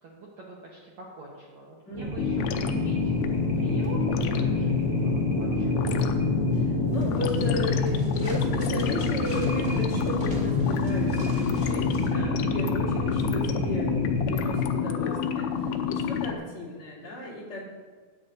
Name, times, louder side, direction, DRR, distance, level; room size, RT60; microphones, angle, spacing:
voice 1, 0.0-2.5 2.8-3.1 3.5-5.7 6.0-6.1 11.4-11.5 13.0-13.2 14.9-15.3 15.9-16.1, right 3 dB, 75° right, -3 dB, 1.6 m, -44 dB
sound 1, 1.9-14.7, left 1 dB, 35° right, 1.9 m, -28 dB
sound 2, 2.2-16.3, left 8 dB, 80° left, 2.5 m, -29 dB
voice 2, 6.5-13.9 14.2-17.6, left 1 dB, 35° left, -8 dB, 3.1 m, -35 dB
sound 3, 6.9-12.1, equal, 5° right, 1.1 m, -41 dB
17.0 x 9.1 x 2.7 m, 1.5 s
omnidirectional pair, 5.0 m